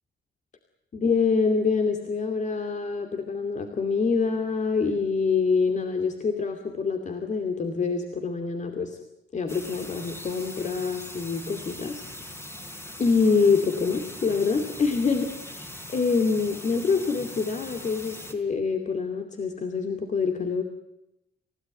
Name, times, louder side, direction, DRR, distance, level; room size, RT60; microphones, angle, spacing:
voice 1, 0.9-9.0 9.3-12.0 13.0-20.6, left 5 dB, 40° left, 6 dB, 2.6 m, -26 dB
sound 1, 9.5-18.3, left 1 dB, 15° left, 4.0 m, -41 dB
29.5 x 16.5 x 9.2 m, 0.88 s
cardioid pair, 135°, 18 cm